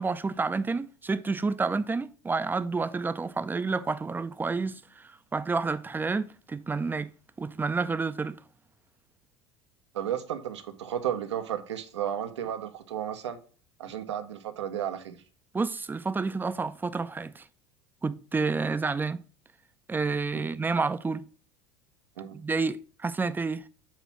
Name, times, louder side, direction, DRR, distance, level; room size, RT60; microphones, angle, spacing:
voice 1, 0.0-7.1 7.4-8.4 15.5-17.4 18.0-19.2 19.9-21.2 22.3-23.6, right 4 dB, 15° right, 0.5 m, -29 dB
voice 2, 9.9-13.4 13.8-15.2 20.3-20.4 22.2-22.4, right 10 dB, 80° right, 0.9 m, -33 dB
7.4 x 2.9 x 5.9 m
hypercardioid pair, 75°, 14 cm